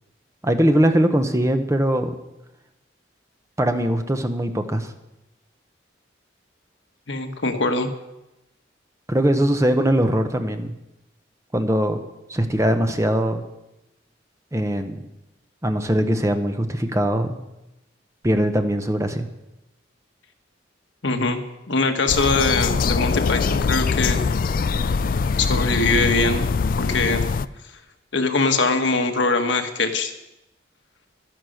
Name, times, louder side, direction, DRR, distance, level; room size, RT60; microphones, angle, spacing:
voice 1, 0.4-2.2 3.6-4.9 9.1-10.7 11.5-12.0 12.3-13.4 14.5-15.0 15.6-17.4 18.2-19.3, right 1 dB, 15° right, 7 dB, 0.9 m, -21 dB
voice 2, 7.1-7.9 21.0-21.4 21.7-24.2 25.4-26.4 26.8-27.2 28.1-30.1, left 3 dB, 75° left, 6 dB, 1.3 m, -22 dB
sound 1, 22.1-27.5, left 5 dB, 45° left, 0.3 m, -22 dB
11.5 x 10.5 x 6.5 m, 0.95 s
head